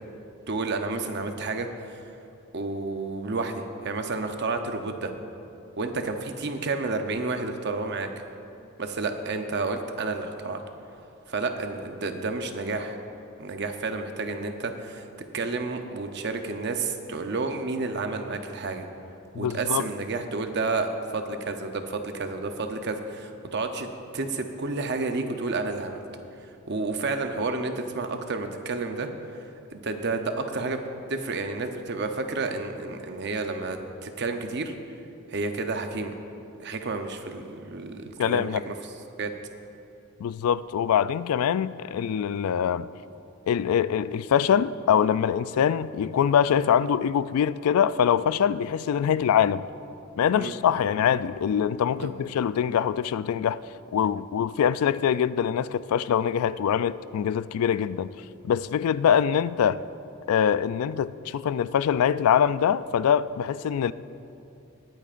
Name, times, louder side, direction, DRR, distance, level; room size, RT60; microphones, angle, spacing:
voice 1, 0.5-2.0 2.5-5.1 5.8-8.1 8.8-10.6 11.3-13.0 13.4-15.1 15.3-18.9 19.3-23.9 24.1-26.0 26.7-30.8 31.1-34.7 35.3-36.1 36.6-38.7 39.2-39.3 50.3-50.5 51.9-52.2, right 3 dB, 50° right, 6 dB, 0.7 m, -30 dB
voice 2, 19.3-19.9 38.2-38.6 40.2-42.9 43.5-49.6 50.2-53.6 53.9-58.1 58.4-59.8 60.3-63.9, left 8 dB, 85° left, 17 dB, 0.3 m, -24 dB
21.0 x 8.8 x 2.5 m, 2.7 s
head